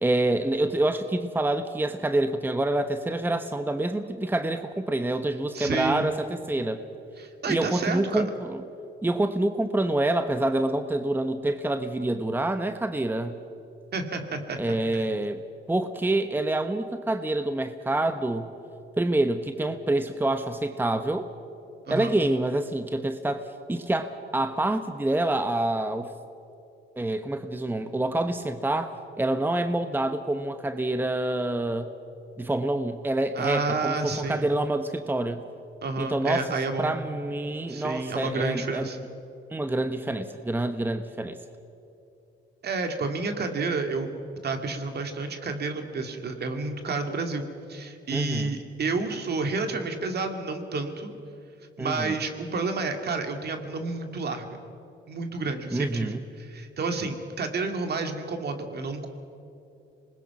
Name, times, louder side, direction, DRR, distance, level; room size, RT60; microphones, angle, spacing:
voice 1, 0.0-6.8 7.5-8.6 9.0-13.4 14.6-15.4 15.7-18.5 19.0-21.3 21.9-26.1 27.0-31.9 32.4-35.4 36.0-36.5 36.8-39.0 39.5-41.4 48.1-48.5 51.8-52.1 55.7-56.2, right 1 dB, 10° right, 8 dB, 0.9 m, -27 dB
voice 2, 5.5-6.1 7.2-8.2 13.9-14.6 14.9-15.0 21.9-22.1 33.3-34.5 35.8-36.9 37.7-39.0 42.6-44.1 44.4-51.1 51.8-54.5 55.1-59.1, right 3 dB, 55° right, 6 dB, 2.4 m, -30 dB
26.5 x 20.5 x 6.0 m, 2.8 s
cardioid pair, 90°, 20 cm